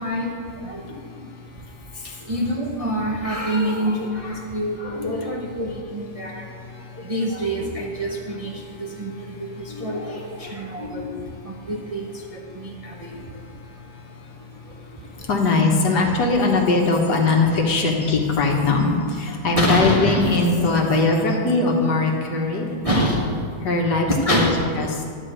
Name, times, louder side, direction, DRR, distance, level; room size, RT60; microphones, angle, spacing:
voice 1, 0.0-1.7 1.9-15.3 15.9-16.0 18.0-18.2 18.8-19.0 19.3-21.0 21.3-21.4 22.4-25.0, equal, 30° right, -2 dB, 0.7 m, -27 dB
voice 2, 0.8-2.3 6.1-7.1 8.6-9.8 10.5-10.7 13.7-14.3 14.7-14.8 15.1-22.7 23.6-25.0, left 3 dB, 70° left, 1 dB, 1.8 m, -22 dB
11.0 x 5.0 x 7.8 m, 2.2 s
omnidirectional pair, 1.8 m